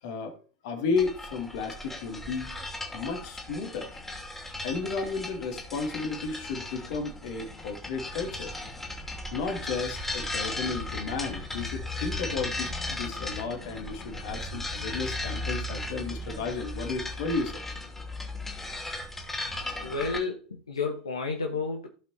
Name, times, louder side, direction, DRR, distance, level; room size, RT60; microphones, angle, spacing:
voice 1, 0.0-2.5 2.9-4.0 4.6-8.6 9.3-17.7, left 4 dB, 60° left, 2.7 m, -33 dB
sound 1, 1.0-20.2, left 2 dB, 10° left, 2.7 m, -36 dB
voice 2, 19.8-21.9, left 4 dB, 85° left, 1.5 m, -31 dB
16.5 x 5.7 x 3.0 m
figure-of-eight pair, 90°, 3 cm